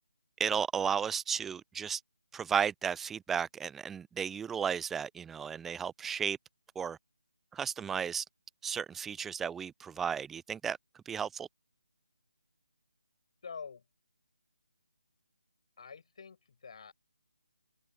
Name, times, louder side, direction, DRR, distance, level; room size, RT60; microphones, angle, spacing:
voice 1, 0.4-2.0 2.3-6.4 6.8-7.0 7.5-8.2 8.6-10.8 11.1-11.5, right 7 dB, 5° right, 0.3 m, -34 dB
voice 2, 13.4-13.9 15.8-16.9, left 5 dB, 50° left, 8.0 m, -46 dB
figure-of-eight pair, 155°, 4 cm